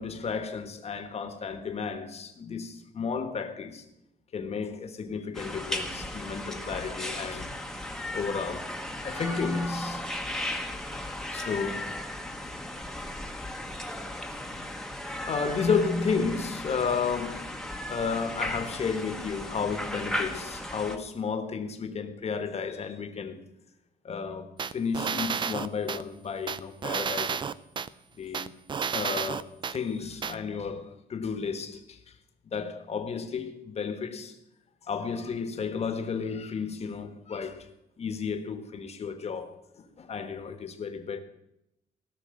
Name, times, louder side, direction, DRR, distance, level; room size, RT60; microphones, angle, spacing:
voice 1, 0.0-3.8 4.3-7.5 8.1-8.8 9.0-10.1 11.3-11.9 14.5-14.7 15.3-17.6 17.9-23.4 24.0-27.5 28.2-28.5 28.9-32.0 32.4-34.4 34.9-37.7 38.0-41.2, left 5 dB, 40° left, 1.3 m, -32 dB
sound 1, 5.3-21.0, left 1 dB, 5° left, 1.1 m, -36 dB
sound 2, 24.6-26.0 26.5-27.9 28.3-29.8 30.2-30.3, right 6 dB, 30° right, 0.4 m, -31 dB
17.5 x 6.4 x 7.7 m
wide cardioid pair, 160°, 16 cm